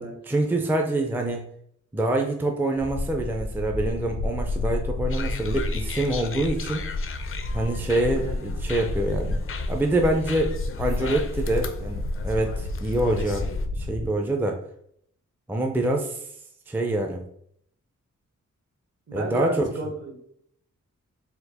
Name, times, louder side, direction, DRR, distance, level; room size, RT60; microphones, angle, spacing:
voice 1, 0.3-1.4 1.9-6.9 7.5-9.4 9.7-13.5 13.8-14.6 15.5-16.2 16.7-17.3 19.1-19.6, right 1 dB, 5° right, 3 dB, 0.5 m, -25 dB
sound 1, 2.8-14.1, left 2 dB, 90° left, 0.8 m, -30 dB
sound 2, 5.1-13.7, left 5 dB, 45° left, 0.5 m, -39 dB
voice 2, 19.1-20.2, right 2 dB, 55° right, 2 dB, 1.1 m, -32 dB
4.3 x 2.4 x 4.1 m, 0.69 s
wide cardioid pair, 90°, 30 cm